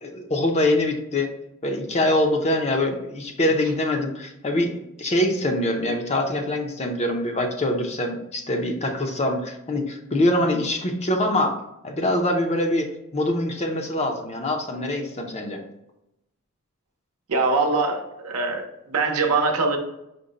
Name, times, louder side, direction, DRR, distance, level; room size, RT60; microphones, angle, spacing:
voice 1, 0.0-1.3 1.6-11.6 11.8-15.6, left 1 dB, 30° left, 4 dB, 0.6 m, -24 dB
voice 2, 17.3-19.8, right 3 dB, 75° right, 3 dB, 0.8 m, -23 dB
5.1 x 2.1 x 3.8 m, 0.86 s
head